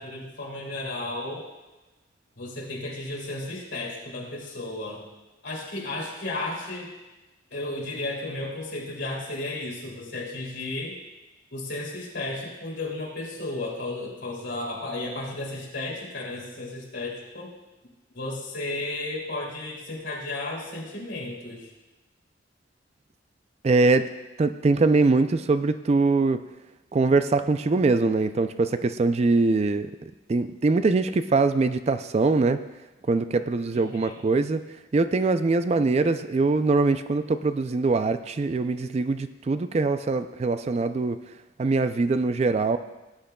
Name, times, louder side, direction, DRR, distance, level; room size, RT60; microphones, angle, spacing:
voice 1, 0.0-1.5 2.4-5.1 5.4-6.9 7.5-11.0 11.5-17.5 18.1-21.7 33.7-34.1, left 2 dB, 70° left, -3 dB, 2.7 m, -33 dB
voice 2, 23.6-24.1 24.4-26.4 26.9-29.9 30.3-32.6 33.1-34.6 34.9-41.2 41.6-42.8, right 3 dB, 35° right, 11 dB, 0.3 m, -22 dB
17.0 x 8.8 x 2.2 m, 1.1 s
head